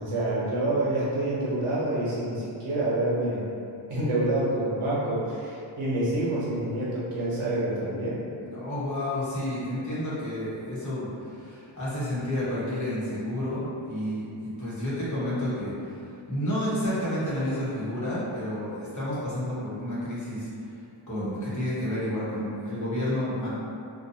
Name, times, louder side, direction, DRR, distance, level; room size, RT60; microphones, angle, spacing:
voice 1, 0.0-3.5 3.9-8.2, right 1 dB, 80° right, -7 dB, 0.9 m, -27 dB
voice 2, 8.4-20.5 21.1-23.5, left 1 dB, 35° left, -10 dB, 0.9 m, -30 dB
2.6 x 2.2 x 2.6 m, 2.6 s
wide cardioid pair, 120°, 50 cm